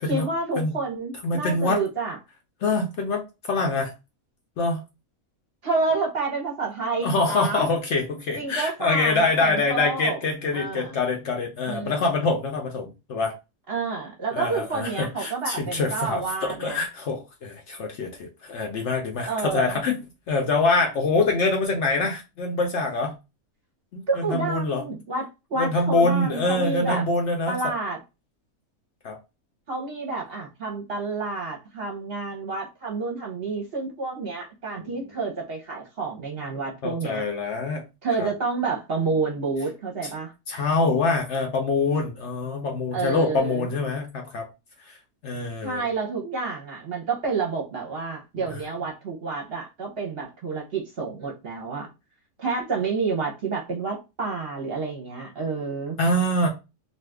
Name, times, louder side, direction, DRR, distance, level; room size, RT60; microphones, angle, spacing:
voice 1, 0.1-2.2 5.6-7.7 8.4-10.2 10.5-10.9 11.7-12.0 13.7-16.9 19.2-19.8 24.1-27.0 27.5-28.0 29.7-37.2 38.0-40.3 42.9-43.7 45.6-51.9 52.4-56.0, right 4 dB, 50° right, 0.9 m, -29 dB
voice 2, 1.2-1.8 2.6-3.9 4.6-4.8 7.0-13.3 14.3-20.0 20.3-23.1 23.9-24.8 25.5-27.6 29.0-29.2 34.8-35.1 36.8-37.8 38.2-38.3 40.0-40.1 40.5-44.5 44.8-45.0 45.2-45.9 48.5-48.6 56.0-56.5, left 3 dB, 65° left, 0.8 m, -25 dB
2.6 x 2.4 x 3.3 m
omnidirectional pair, 1.5 m